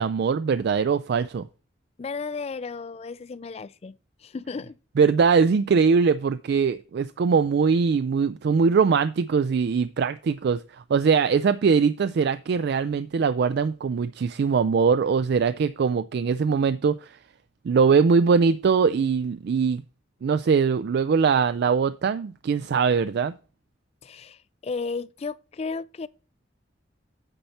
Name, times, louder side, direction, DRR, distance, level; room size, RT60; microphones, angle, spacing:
voice 1, 0.0-1.4 5.0-17.2 17.6-19.8 20.2-23.3, right 5 dB, 55° right, 0.3 m, -22 dB
voice 2, 2.0-4.8 24.0-26.1, left 4 dB, 35° left, 0.3 m, -34 dB
8.9 x 4.2 x 5.6 m
head